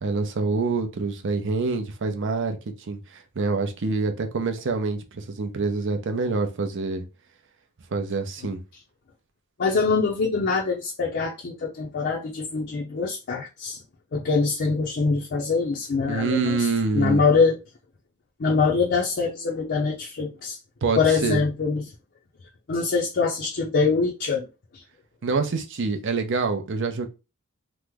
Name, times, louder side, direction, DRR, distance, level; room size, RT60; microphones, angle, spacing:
voice 1, 0.0-7.0 7.9-8.6 16.1-17.2 20.8-21.4 25.2-27.1, right 3 dB, 60° right, 0.6 m, -26 dB
voice 2, 9.6-13.8 14.1-16.7 16.9-17.6 18.4-20.6 21.0-21.8 22.7-24.5 24.7-24.8, left 4 dB, 50° left, 0.5 m, -24 dB
3.0 x 2.0 x 3.4 m
head